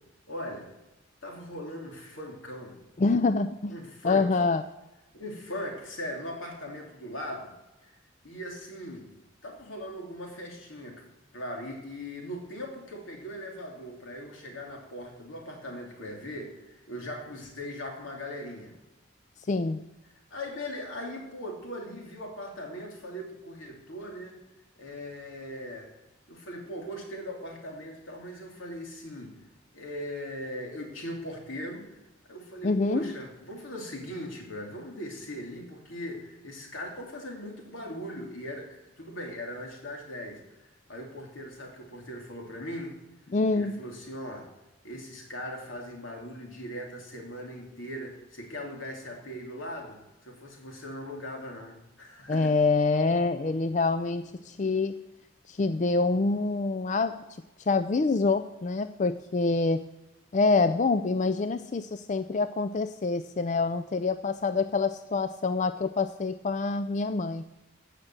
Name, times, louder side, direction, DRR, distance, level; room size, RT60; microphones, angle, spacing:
voice 1, 0.3-0.7 1.2-2.8 3.7-4.4 5.1-7.5 7.8-7.9 8.2-9.1 9.4-11.0 11.3-18.7 20.3-24.4 24.8-25.9 26.3-29.4 29.7-31.9 32.3-40.4 40.9-43.0 43.5-44.5 44.8-50.0 50.2-52.5, equal, 80° left, 0 dB, 3.2 m, -39 dB
voice 2, 3.0-3.7 4.0-4.6 19.5-19.8 32.6-33.1 43.3-43.8 52.3-55.0 55.5-57.2 57.7-59.8 60.3-67.4, left 3 dB, 35° left, 11 dB, 0.4 m, -26 dB
15.5 x 6.0 x 7.7 m, 1.0 s
head